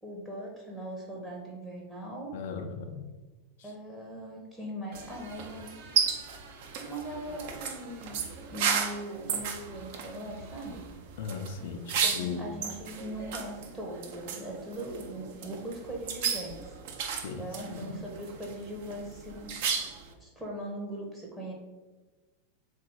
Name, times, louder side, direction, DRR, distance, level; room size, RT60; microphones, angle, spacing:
voice 1, 0.0-2.3 3.6-6.5 6.8-10.8 12.0-16.8 17.4-21.5, right 1 dB, 5° right, -3 dB, 0.7 m, -40 dB
voice 2, 2.3-3.1 3.6-3.7 11.2-12.5 17.1-18.0, left 5 dB, 55° left, 5 dB, 0.4 m, -38 dB
sound 1, 4.9-20.1, right 6 dB, 50° right, 0.5 m, -34 dB
3.7 x 2.4 x 4.4 m, 1.2 s
figure-of-eight pair, 90°, 0 cm